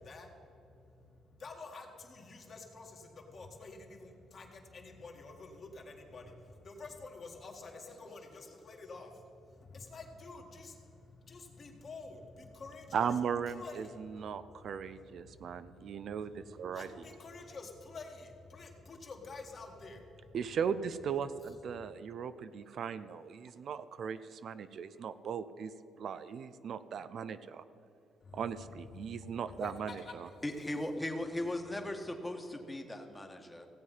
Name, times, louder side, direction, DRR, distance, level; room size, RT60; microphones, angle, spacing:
voice 1, 0.0-9.1 9.5-13.1 13.5-14.3 15.2-16.1 16.6-20.4 28.2-30.4, left 3 dB, 45° left, 1 dB, 2.0 m, -49 dB
voice 2, 12.9-16.9 20.3-25.7 26.0-27.6 28.3-30.3, right 7 dB, 65° right, 12 dB, 0.5 m, -37 dB
voice 3, 30.4-33.7, left 1 dB, 15° left, 4 dB, 1.4 m, -38 dB
16.5 x 7.8 x 5.7 m, 2.8 s
cardioid pair, 90°, 0 cm